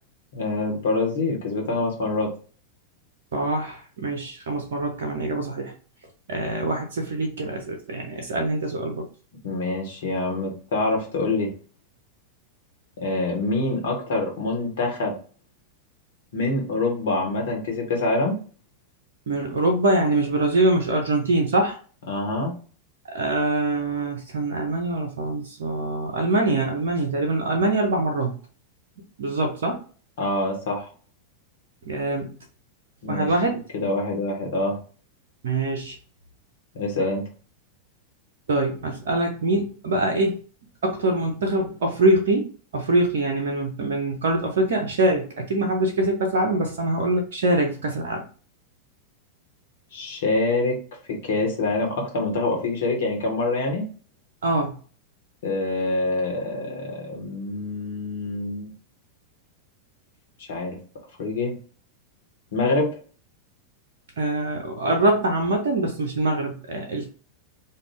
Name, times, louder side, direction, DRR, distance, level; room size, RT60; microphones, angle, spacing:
voice 1, 0.3-2.3 9.4-11.5 13.0-15.2 16.3-18.4 22.1-22.5 30.2-30.9 33.0-33.3 33.7-34.8 36.7-37.3 49.9-50.8 51.1-53.8 55.4-58.7 60.4-60.8 61.2-61.5 62.5-62.9, left 2 dB, 60° left, 0 dB, 1.0 m, -25 dB
voice 2, 3.3-5.7 6.3-9.1 19.3-21.8 23.0-28.3 29.2-29.8 31.9-32.4 33.1-33.6 35.4-35.9 38.5-40.4 40.8-42.5 42.7-48.2 54.4-54.7 64.2-67.1, right 2 dB, 60° right, 3 dB, 0.5 m, -24 dB
2.5 x 2.2 x 3.3 m, 0.40 s
figure-of-eight pair, 90°, 0 cm